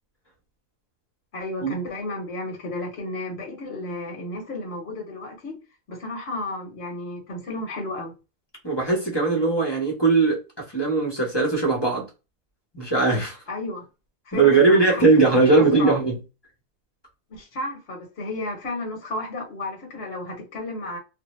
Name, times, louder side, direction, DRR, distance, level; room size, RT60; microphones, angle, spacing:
voice 1, 1.3-5.6 5.9-8.1 13.5-13.8 14.2-15.9 17.3-21.0, left 2 dB, 50° left, 1.0 m, -33 dB
voice 2, 8.6-10.4 10.7-12.1 12.7-13.4 14.3-16.2, right 3 dB, 20° left, 0.7 m, -19 dB
2.7 x 2.0 x 3.0 m
omnidirectional pair, 1.7 m